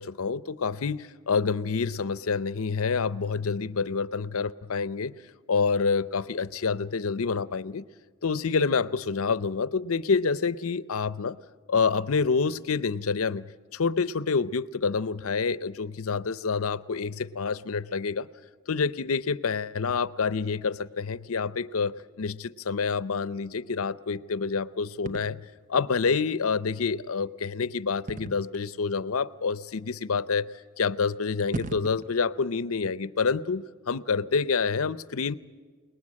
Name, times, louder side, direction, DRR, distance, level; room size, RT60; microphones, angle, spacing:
voice 1, 0.0-5.1 5.5-7.8 8.2-11.4 11.7-18.3 18.7-30.5 30.8-35.4, left 5 dB, 70° left, 16 dB, 0.7 m, -27 dB
sound 1, 25.1-25.4 28.1-28.6 29.5-29.6 31.0-31.1 31.4-32.1, right 2 dB, 35° right, 0.8 m, -36 dB
29.0 x 19.5 x 8.6 m, 1.5 s
head